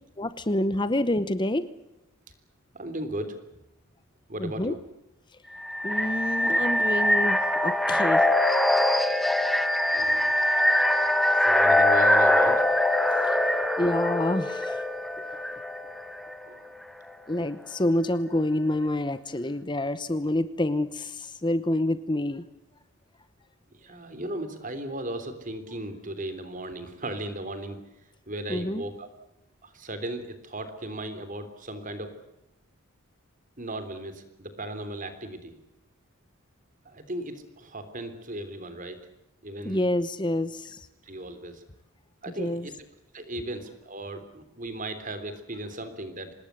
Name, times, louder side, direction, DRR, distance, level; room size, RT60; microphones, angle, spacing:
voice 1, 0.2-1.7 4.4-4.7 5.8-8.3 13.3-13.4 13.8-14.8 17.3-22.4 28.5-28.8 39.6-40.9 42.4-42.7, left 1 dB, 20° left, 14 dB, 0.8 m, -27 dB
voice 2, 2.7-3.4 4.3-4.8 9.9-10.4 11.4-12.7 16.4-16.6 23.8-27.8 28.3-29.1 29.6-32.1 33.6-35.5 36.8-39.1 39.4-39.9 41.0-41.6 42.2-42.7 43.1-46.3, right 1 dB, 35° right, 10 dB, 3.4 m, -36 dB
sound 1, 5.5-16.3, left 1 dB, ahead, 1.4 m, -23 dB
26.0 x 20.0 x 8.3 m, 0.87 s
head